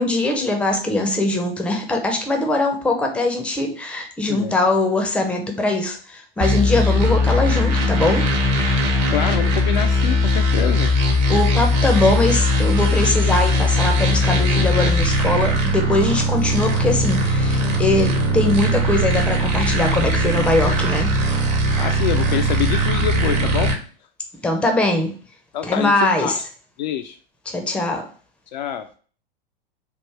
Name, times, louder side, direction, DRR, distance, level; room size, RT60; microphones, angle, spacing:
voice 1, 0.0-8.3 11.3-21.2 24.4-25.1 25.6-26.4 27.5-28.1, left 2 dB, 5° left, 3 dB, 0.6 m, -21 dB
sound 1, 6.4-23.7, left 1 dB, 50° right, 1.0 m, -19 dB
voice 2, 9.1-10.9 21.8-23.7 25.5-25.9 26.2-26.3 26.8-27.2 28.5-28.9, left 9 dB, 50° left, 7 dB, 0.4 m, -25 dB
3.6 x 2.4 x 4.5 m, 0.41 s
figure-of-eight pair, 95°, 29 cm